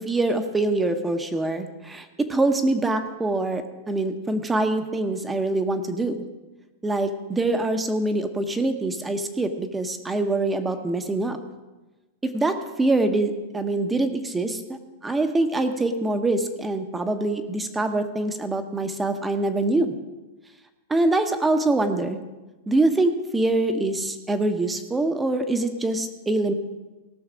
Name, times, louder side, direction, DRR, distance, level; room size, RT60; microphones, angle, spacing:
voice 1, 0.0-6.2 6.8-11.4 12.2-19.9 20.9-22.2 22.7-26.5, right 2 dB, 10° right, 8 dB, 0.8 m, -24 dB
17.5 x 6.4 x 5.0 m, 1.1 s
supercardioid pair, 165°, 0 cm